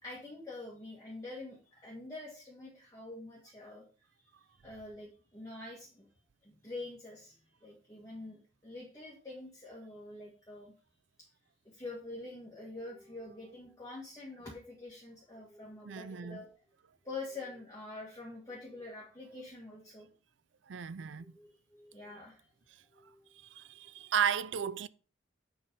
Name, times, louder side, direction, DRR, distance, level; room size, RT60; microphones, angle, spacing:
voice 1, 0.0-3.8 4.2-6.1 6.4-10.7 11.7-16.5 17.0-20.1 21.2-22.5 22.9-23.3, left 2 dB, 20° left, 1.7 m, -46 dB
voice 2, 15.9-16.4 20.7-21.3 23.4-24.9, right 8 dB, 75° right, 0.5 m, -34 dB
7.5 x 5.2 x 5.3 m
head